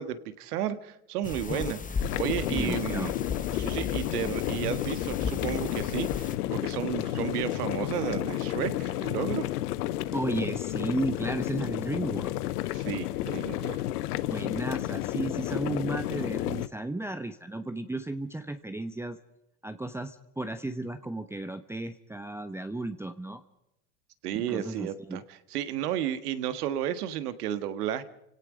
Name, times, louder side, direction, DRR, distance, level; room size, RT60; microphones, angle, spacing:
voice 1, 0.0-3.1 3.5-9.4 12.7-13.8 24.2-25.2 25.5-28.0, right 11 dB, 80° right, 12 dB, 1.8 m, -33 dB
sound 1, 1.2-6.4, left 5 dB, 15° left, 1.0 m, -35 dB
sound 2, 2.0-16.7, left 14 dB, 80° left, 1.0 m, -31 dB
voice 2, 2.5-3.1 10.1-12.3 14.2-19.2 19.6-23.4 24.3-25.2, right 2 dB, 5° right, 7 dB, 0.9 m, -34 dB
29.0 x 17.5 x 5.1 m, 0.85 s
hypercardioid pair, 105°, 45 cm